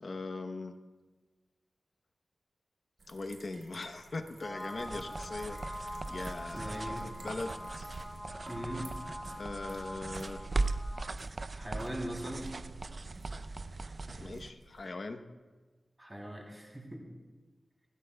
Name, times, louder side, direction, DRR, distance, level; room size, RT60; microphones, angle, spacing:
voice 1, 0.0-0.7 3.1-7.9 9.4-10.5 14.2-15.2, left 3 dB, 65° left, 7 dB, 0.9 m, -41 dB
sound 1, 3.0-14.9, right 2 dB, 70° right, 3.3 m, -56 dB
sound 2, 4.4-11.1, left 1 dB, 10° left, 0.9 m, -44 dB
sound 3, 4.8-14.5, right 3 dB, 55° right, 0.5 m, -39 dB
voice 2, 6.5-7.1 8.4-8.9 11.5-12.5 16.0-17.0, right 1 dB, 20° right, -1 dB, 3.0 m, -40 dB
24.0 x 13.0 x 2.3 m, 1.3 s
cardioid pair, 55°, 0 cm